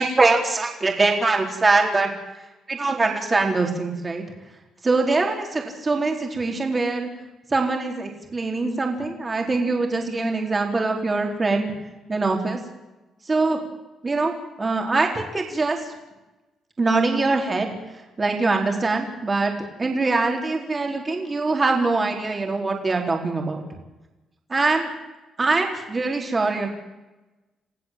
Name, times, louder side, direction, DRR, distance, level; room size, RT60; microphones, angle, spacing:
voice 1, 0.0-2.1 2.7-4.2 4.8-7.1 7.5-11.7 12.1-12.6 13.3-13.6 14.0-14.3 14.6-15.8 16.8-17.7 18.2-19.5 19.8-23.6 24.5-24.9 25.4-26.7, right 3 dB, 30° right, 2 dB, 4.2 m, -23 dB
29.5 x 16.5 x 7.7 m, 1.1 s
cardioid pair, 90°, 0 cm